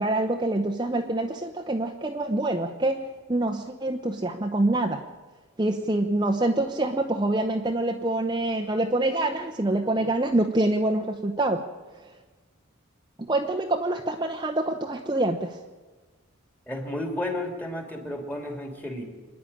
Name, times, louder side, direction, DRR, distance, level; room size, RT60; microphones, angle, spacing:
voice 1, 0.0-5.0 5.6-11.6 13.3-15.6, right 2 dB, 20° right, 2 dB, 0.9 m, -26 dB
voice 2, 16.7-19.1, left 1 dB, 10° left, 3 dB, 2.8 m, -32 dB
26.0 x 10.0 x 9.9 m, 1.3 s
head